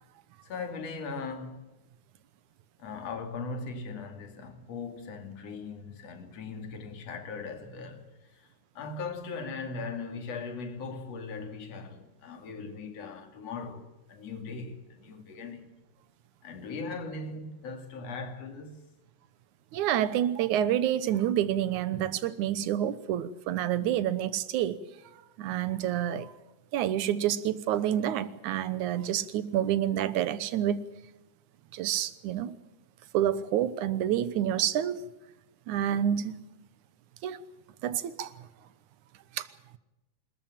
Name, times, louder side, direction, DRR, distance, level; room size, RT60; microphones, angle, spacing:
voice 1, 0.4-1.6 2.8-8.5 8.8-15.7 16.4-18.8, left 4 dB, 50° left, 3.5 m, -39 dB
voice 2, 19.7-24.8 25.4-26.3 26.7-30.8 31.7-32.6 33.1-35.0 35.7-36.4 37.2-37.4 37.8-38.3 39.3-39.5, right 11 dB, 75° right, 2.3 m, -28 dB
26.5 x 14.0 x 9.0 m
omnidirectional pair, 3.7 m